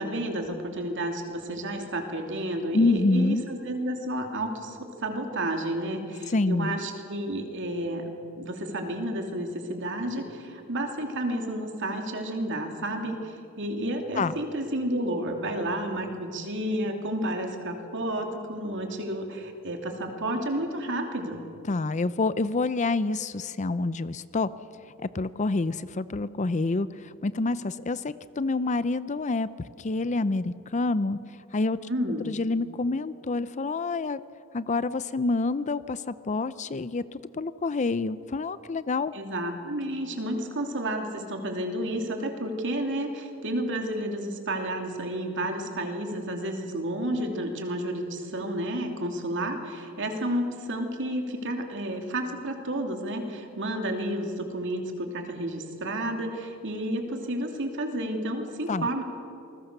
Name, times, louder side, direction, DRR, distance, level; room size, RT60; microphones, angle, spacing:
voice 1, 0.0-8.1 8.4-21.5 31.8-32.3 39.1-59.0, right 1 dB, 60° right, 3 dB, 2.8 m, -31 dB
voice 2, 2.7-3.4 6.3-6.8 14.2-14.3 21.7-24.5 25.0-29.5 29.8-31.2 31.5-31.8 32.3-34.2 34.5-39.1 58.7-58.9, left 3 dB, 35° left, 15 dB, 0.5 m, -27 dB
28.0 x 20.5 x 6.7 m, 2.7 s
head